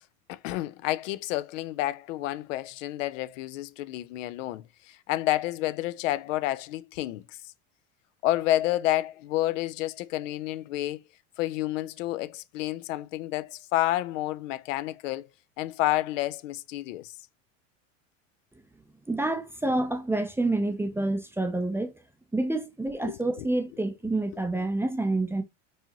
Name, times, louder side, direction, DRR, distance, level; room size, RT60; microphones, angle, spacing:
voice 1, 0.3-7.4 8.2-11.0 11.4-15.3 15.6-17.1 23.0-23.5, left 15 dB, 80° left, 0.5 m, -30 dB
voice 2, 19.1-21.9 22.3-25.4, right 2 dB, 5° right, 0.4 m, -28 dB
4.8 x 2.8 x 2.8 m
supercardioid pair, 100°, 38 cm